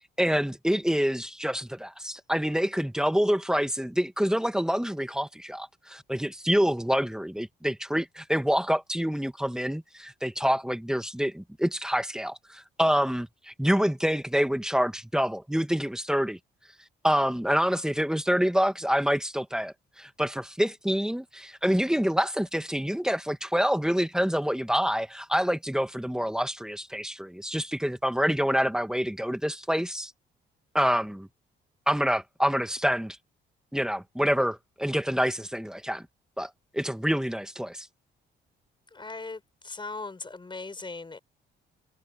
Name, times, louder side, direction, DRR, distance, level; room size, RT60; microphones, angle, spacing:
voice 1, 0.2-16.4 17.0-30.1 30.7-31.3 31.9-33.2 33.7-36.0 36.4-37.9, equal, 5° right, 1.8 m, -27 dB
voice 2, 38.9-41.2, left 3 dB, 25° left, 5.2 m, -39 dB
cardioid pair, 90°, 20 cm